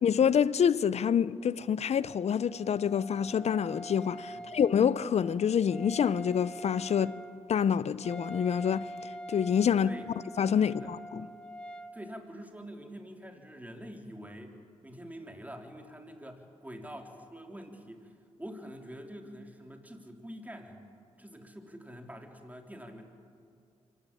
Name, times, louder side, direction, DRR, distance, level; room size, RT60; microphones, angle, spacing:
voice 1, 0.0-7.2 7.5-8.9 9.3-9.9 10.4-11.3, left 8 dB, 65° left, 0.7 m, -27 dB
Wind instrument woodwind instrument, 2.0-12.0, right 1 dB, 10° left, 1.6 m, -45 dB
voice 2, 11.9-14.6 14.8-18.1 18.4-20.8 21.2-23.1, equal, 15° right, 3.7 m, -46 dB
24.5 x 16.0 x 8.7 m
supercardioid pair, 50°, 12 cm